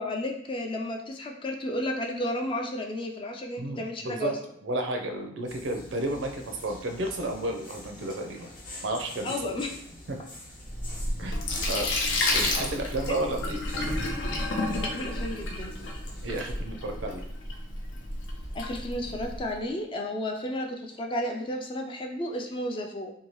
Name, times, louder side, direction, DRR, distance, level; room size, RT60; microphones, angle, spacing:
voice 1, 0.0-4.4 9.2-9.7 11.5-11.8 13.1-13.3 14.8-15.8 18.5-23.1, left 1 dB, 25° left, 2 dB, 0.3 m, -33 dB
voice 2, 3.6-4.3 4.6-8.5 8.8-9.3 10.1-10.2 11.2-13.6 16.2-17.2, right 1 dB, 80° right, 4 dB, 0.5 m, -32 dB
sound 1, 5.5-16.5, left 1 dB, 45° left, 0.8 m, -46 dB
Sink (filling or washing), 10.6-19.4, left 2 dB, 80° left, 0.5 m, -31 dB
2.7 x 2.2 x 3.0 m, 0.71 s
head